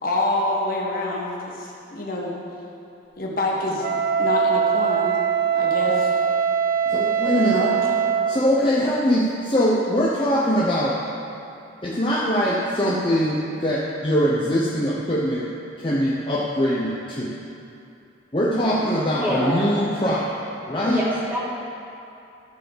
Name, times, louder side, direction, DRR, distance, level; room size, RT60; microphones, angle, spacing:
voice 1, 0.0-2.3 3.2-3.9 4.2-5.1 5.5-6.1 7.4-7.7, left 1 dB, 45° left, -3 dB, 1.4 m, -26 dB
Wind instrument woodwind instrument, 3.8-8.4, right 7 dB, 50° right, 0.5 m, -22 dB
voice 2, 6.9-7.5 8.3-11.0 11.8-15.5 15.8-17.3 18.3-20.3 20.7-21.0, equal, 25° left, -6 dB, 0.9 m, -22 dB
voice 3, 18.6-19.7 20.7-21.4, equal, 10° right, -7 dB, 2.2 m, -27 dB
14.0 x 4.8 x 6.8 m, 2.7 s
head